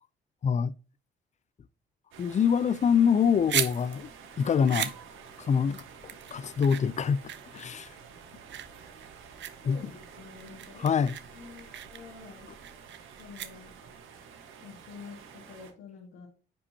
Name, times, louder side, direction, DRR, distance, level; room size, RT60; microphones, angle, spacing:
voice 1, 0.4-0.7 2.2-4.1 4.4-4.9 5.4-5.8 6.3-7.2 7.5-7.9 9.7-9.8 10.8-11.2, left 7 dB, 35° left, 0.5 m, -25 dB
sound 1, 2.1-15.7, right 6 dB, 85° right, 1.5 m, -50 dB
sound 2, 3.2-14.0, right 10 dB, 65° right, 0.9 m, -38 dB
voice 2, 9.3-10.9 11.3-12.5 13.2-13.8 14.6-16.3, left 5 dB, 90° left, 1.8 m, -48 dB
9.7 x 5.4 x 2.9 m
cardioid pair, 90°, 20 cm